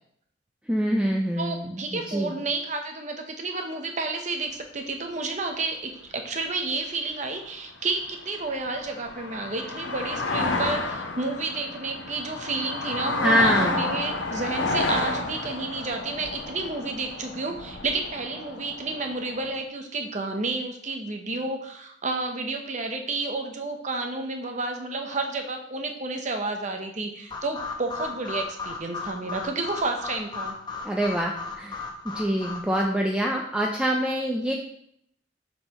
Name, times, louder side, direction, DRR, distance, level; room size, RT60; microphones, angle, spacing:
voice 1, 0.7-2.3 13.2-13.8 30.8-34.5, equal, 5° right, 0 dB, 0.5 m, -25 dB
voice 2, 1.4-30.6, right 3 dB, 40° right, 4 dB, 0.9 m, -31 dB
sound 1, 7.9-19.6, left 2 dB, 75° left, 0.8 m, -31 dB
sound 2, 27.3-32.8, left 4 dB, 25° left, 0.9 m, -36 dB
7.8 x 5.5 x 3.0 m, 0.71 s
head